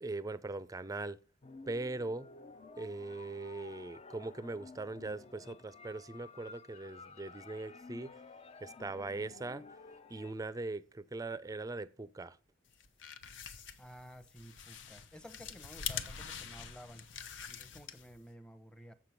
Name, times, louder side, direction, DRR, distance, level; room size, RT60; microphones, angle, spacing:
voice 1, 0.0-1.2 1.7-2.3 2.8-8.2 8.6-9.6 10.1-12.4, right 2 dB, 20° right, 0.4 m, -40 dB
sound 1, 1.4-10.3, left 4 dB, 35° left, 0.5 m, -53 dB
sound 2, 12.7-18.3, left 7 dB, 85° left, 0.9 m, -45 dB
voice 2, 13.8-17.1 17.5-18.9, equal, 5° left, 0.8 m, -53 dB
7.5 x 6.8 x 5.9 m
head